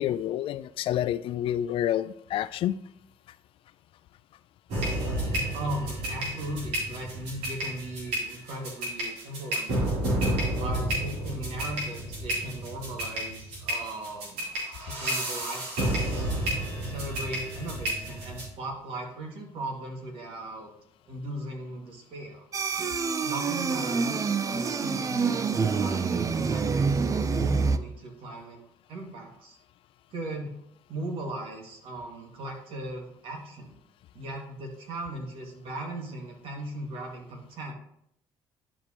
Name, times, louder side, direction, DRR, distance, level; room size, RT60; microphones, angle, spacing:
voice 1, 0.0-2.8, left 11 dB, 70° left, 15 dB, 0.4 m, -28 dB
sound 1, 4.7-18.5, right 1 dB, 90° right, 3.2 m, -31 dB
voice 2, 5.5-10.0 10.6-14.5 14.8-16.3 16.8-20.7 21.1-22.4 23.2-28.6 28.9-29.6 30.1-30.5 30.9-33.7 34.1-37.7, right 1 dB, 70° right, 1 dB, 2.1 m, -38 dB
sound 2, 22.5-27.8, right 5 dB, 35° right, 0.5 m, -27 dB
11.0 x 5.0 x 3.0 m, 0.73 s
cardioid pair, 85°, 10 cm